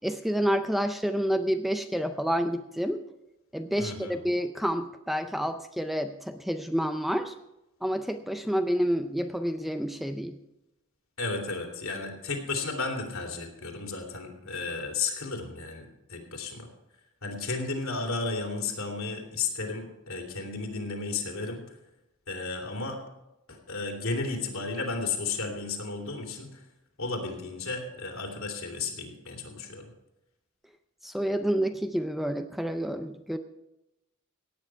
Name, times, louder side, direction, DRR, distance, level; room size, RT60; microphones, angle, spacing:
voice 1, 0.0-3.0 3.5-7.3 7.8-10.4 31.0-33.4, equal, ahead, 8 dB, 0.4 m, -29 dB
voice 2, 3.8-4.2 11.2-16.7 17.2-21.6 22.3-23.0 23.5-26.6 27.0-29.9, left 3 dB, 75° left, 1 dB, 2.9 m, -33 dB
17.0 x 9.1 x 4.6 m, 0.93 s
head